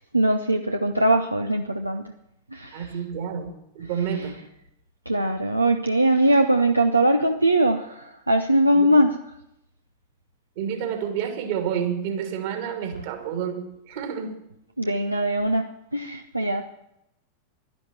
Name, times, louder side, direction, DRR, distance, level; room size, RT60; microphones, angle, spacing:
voice 1, 0.1-2.1 2.5-2.9 4.1-4.3 5.1-9.2 14.8-16.7, right 1 dB, 85° right, 6 dB, 0.8 m, -21 dB
voice 2, 2.7-4.4 8.7-8.9 10.6-14.4, right 8 dB, 50° right, 6 dB, 2.8 m, -29 dB
12.0 x 11.0 x 7.4 m, 0.80 s
figure-of-eight pair, 90°, 0 cm